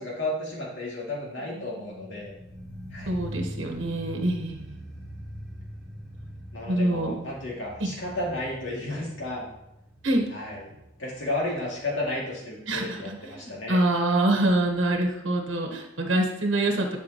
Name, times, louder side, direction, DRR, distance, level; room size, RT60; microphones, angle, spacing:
voice 1, 0.0-2.3 2.9-3.1 6.5-9.5 10.3-10.6 11.0-13.8, left 1 dB, 70° left, -4 dB, 2.4 m, -32 dB
voice 2, 1.5-2.3 3.1-4.8 6.6-7.3 7.8-7.9 10.0-10.2 12.7-17.0, right 1 dB, 75° right, 2 dB, 1.2 m, -26 dB
sound 1, 1.9-12.9 13.1-13.2, equal, 5° left, 2.8 m, -43 dB
11.0 x 5.3 x 3.0 m, 0.86 s
head